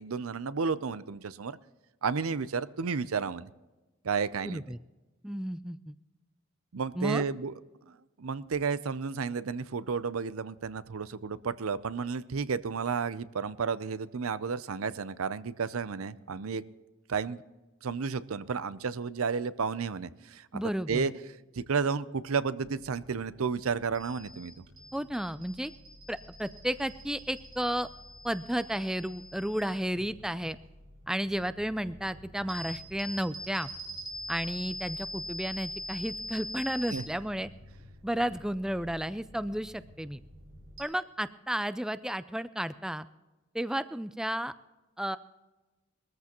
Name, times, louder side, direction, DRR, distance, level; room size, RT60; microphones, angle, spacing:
voice 1, 0.0-1.6 2.0-3.5 4.0-4.6 6.7-7.5 7.9-16.6 17.1-17.4 17.8-20.6 20.9-21.1 21.5-24.5 36.9-37.0, right 5 dB, 80° right, 15 dB, 0.6 m, -32 dB
voice 2, 4.4-4.8 5.2-6.0 6.9-7.2 20.5-21.1 24.9-25.7 26.1-27.9 28.2-30.6 31.1-33.7 34.3-37.5 38.0-40.2 40.8-43.1 43.5-44.5 45.0-45.2, right 1 dB, 5° right, 14 dB, 0.3 m, -32 dB
sound 1, 22.6-40.8, equal, 60° right, 4.9 m, -44 dB
21.5 x 14.0 x 3.0 m, 1.1 s
head